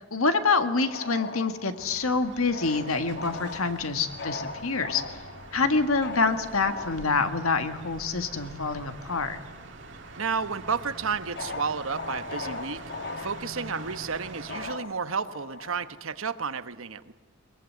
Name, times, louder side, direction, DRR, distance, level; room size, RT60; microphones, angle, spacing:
voice 1, 0.1-5.2 5.5-9.4, left 4 dB, 85° left, 8 dB, 1.8 m, -26 dB
sound 1, 0.7-9.7 10.0-16.5, left 3 dB, 50° left, 1.2 m, -41 dB
sound 2, 1.8-14.7, right 2 dB, 55° right, 2.0 m, -45 dB
voice 2, 10.2-12.8 13.2-17.1, right 5 dB, 75° right, 12 dB, 1.1 m, -32 dB
22.5 x 21.5 x 9.6 m, 1.2 s
head